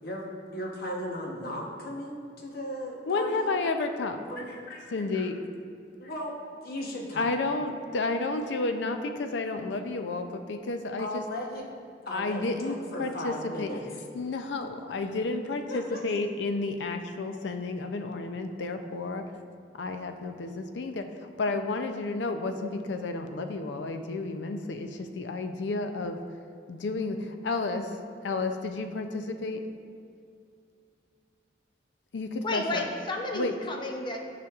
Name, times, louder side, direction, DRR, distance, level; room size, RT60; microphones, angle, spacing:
voice 1, 0.0-3.5 4.3-4.8 5.1-5.3 6.0-6.4 6.6-7.3 11.0-11.7 12.1-13.8 15.7-16.0, left 1 dB, 55° left, -1 dB, 0.9 m, -36 dB
voice 2, 3.1-4.3 4.9-5.4 7.2-11.2 12.1-13.7 14.1-19.3 19.8-26.2 26.7-28.0 28.2-29.7 32.1-32.9 33.3-33.5, left 3 dB, 75° left, 7 dB, 0.4 m, -31 dB
voice 3, 32.4-34.2, left 2 dB, 25° left, 1 dB, 0.6 m, -32 dB
9.4 x 5.1 x 2.4 m, 2.4 s
head